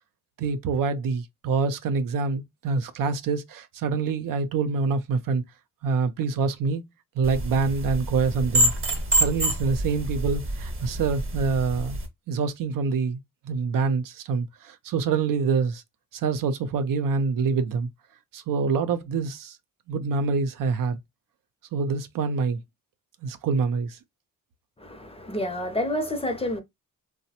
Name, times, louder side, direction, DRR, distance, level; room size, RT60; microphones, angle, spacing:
voice 1, 0.4-5.4 5.8-6.8 7.2-8.7 9.1-12.0 12.3-13.2 13.4-15.8 16.1-17.9 18.3-19.6 19.9-21.0 21.7-22.6 23.2-24.0, right 5 dB, 75° right, 0.5 m, -26 dB
sound 1, 7.2-12.1, right 1 dB, 40° right, 0.8 m, -27 dB
voice 2, 24.8-26.6, left 1 dB, 20° left, 0.5 m, -29 dB
3.1 x 2.0 x 2.7 m
cardioid pair, 80°, 33 cm